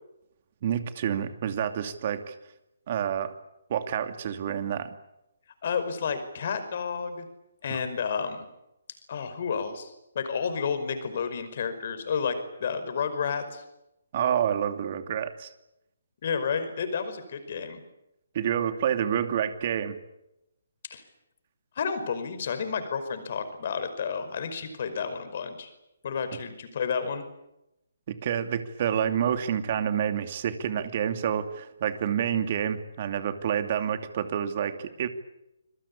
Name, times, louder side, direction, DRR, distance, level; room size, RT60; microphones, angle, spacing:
voice 1, 0.6-2.3 2.9-3.3 3.7-5.0 7.7-7.8 14.1-15.5 18.3-20.0 28.1-35.1, right 9 dB, 45° right, 8 dB, 2.7 m, -28 dB
voice 2, 5.6-7.3 7.6-8.5 9.1-13.6 16.2-17.8 20.9-21.0 21.8-25.7 26.0-27.2, left 6 dB, 50° left, 10 dB, 5.3 m, -31 dB
26.5 x 22.5 x 8.7 m, 0.89 s
figure-of-eight pair, 140°, 0 cm